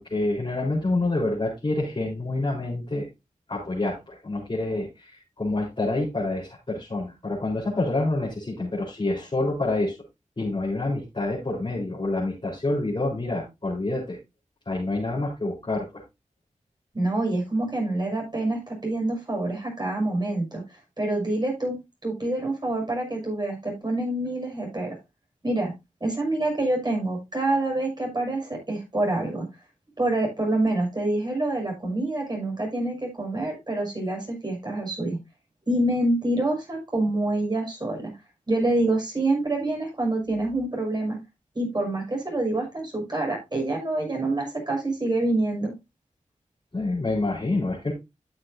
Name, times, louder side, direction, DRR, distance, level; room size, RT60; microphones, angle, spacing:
voice 1, 0.0-3.1 3.5-10.0 10.4-14.2 14.7-16.0 46.7-47.9, left 2 dB, 40° left, -5 dB, 4.2 m, -27 dB
voice 2, 16.9-20.6 21.0-25.0 25.4-25.7 26.0-29.5 30.0-35.2 35.7-38.1 38.5-41.2 41.5-45.7, right 2 dB, 35° right, 0 dB, 6.1 m, -26 dB
12.0 x 7.5 x 2.7 m, 0.23 s
cardioid pair, 50°, 13 cm